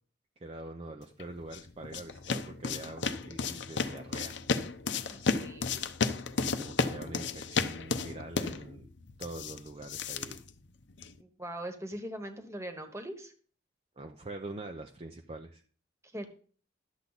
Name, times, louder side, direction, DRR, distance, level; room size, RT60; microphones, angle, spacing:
voice 1, 0.4-4.4 6.4-8.9 9.2-10.4 14.0-15.6, right 2 dB, 30° right, 4 dB, 0.6 m, -44 dB
sound 1, 1.2-11.2, left 4 dB, 70° left, 0.7 m, -34 dB
voice 2, 5.1-5.8 11.2-13.3 16.1-16.3, right 1 dB, 15° right, 7 dB, 1.3 m, -41 dB
12.0 x 7.3 x 4.0 m, 0.42 s
head